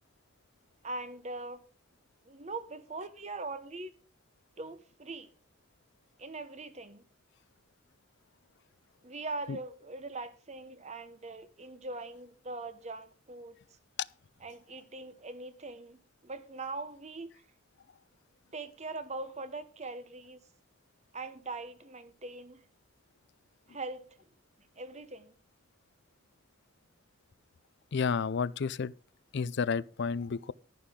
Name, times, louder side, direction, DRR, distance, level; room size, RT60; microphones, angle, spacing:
voice 1, 0.8-1.6 2.3-3.9 4.6-5.3 6.2-7.0 9.0-13.6 14.4-17.4 18.5-20.4 21.1-22.6 23.7-24.1 24.8-25.3, right 3 dB, 30° right, 1.0 m, -41 dB
voice 2, 27.9-28.9 29.3-30.5, left 5 dB, 55° left, 0.4 m, -31 dB
11.0 x 11.0 x 3.7 m
head